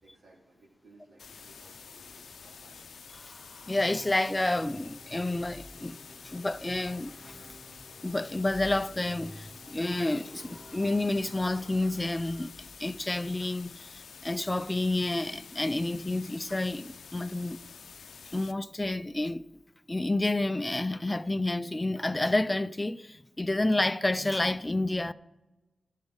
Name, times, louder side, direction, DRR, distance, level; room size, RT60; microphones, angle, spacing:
voice 1, 0.0-2.9, right 2 dB, 65° right, 3.4 m, -59 dB
sound 1, 1.2-18.5, left 6 dB, 70° left, 0.6 m, -49 dB
sound 2, 3.1-4.8 5.8-12.5, right 1 dB, 35° right, 2.3 m, -60 dB
voice 2, 3.7-6.0 6.2-7.4 8.0-12.5 12.8-17.6 18.3-19.4 19.9-25.1, left 2 dB, 15° left, 0.4 m, -29 dB
Musical instrument, 3.8-12.3, equal, ahead, 1.5 m, -54 dB
13.0 x 7.4 x 6.4 m
wide cardioid pair, 110°, 0 cm